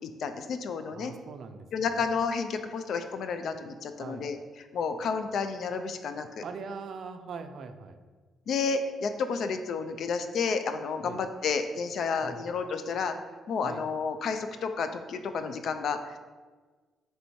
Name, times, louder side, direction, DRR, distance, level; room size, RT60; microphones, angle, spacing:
voice 1, 0.0-1.1 1.7-6.4 8.5-13.1 13.5-16.2, left 5 dB, 65° left, 8 dB, 0.3 m, -31 dB
voice 2, 0.9-2.1 4.0-4.3 6.4-8.0 11.0-11.2 12.2-12.5 13.6-13.8, right 5 dB, 60° right, 8 dB, 0.3 m, -42 dB
3.3 x 2.6 x 4.5 m, 1.4 s
cardioid pair, 90°, 0 cm